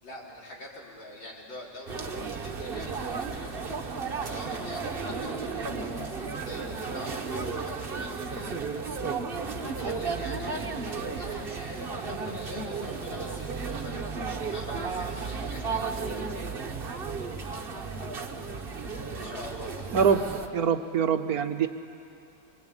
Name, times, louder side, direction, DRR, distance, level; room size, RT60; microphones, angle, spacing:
voice 1, 0.0-3.7 4.2-8.6 9.6-14.1 14.4-16.0 19.2-20.3, left 1 dB, 90° left, -3 dB, 4.8 m, -44 dB
sound 1, 1.9-20.5, right 4 dB, 35° right, 1.2 m, -34 dB
voice 2, 20.5-21.7, right 7 dB, 60° right, 8 dB, 1.2 m, -24 dB
24.0 x 23.5 x 8.9 m, 2.6 s
omnidirectional pair, 2.0 m